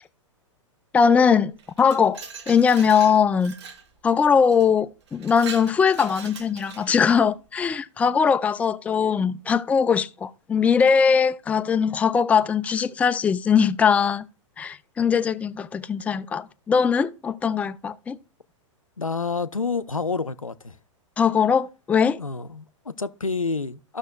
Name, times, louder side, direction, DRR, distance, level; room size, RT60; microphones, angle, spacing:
voice 1, 0.9-1.5 1.8-3.5 4.0-14.3 14.6-18.2 21.2-22.2, left 6 dB, 10° left, 0.4 m, -21 dB
Glass, 1.6-3.9 4.5-4.7 5.1-7.1, right 6 dB, 55° right, 1.4 m, -41 dB
voice 2, 19.0-20.8 22.2-24.0, left 4 dB, 90° left, 0.5 m, -28 dB
15.0 x 6.3 x 2.2 m
figure-of-eight pair, 100°, 17 cm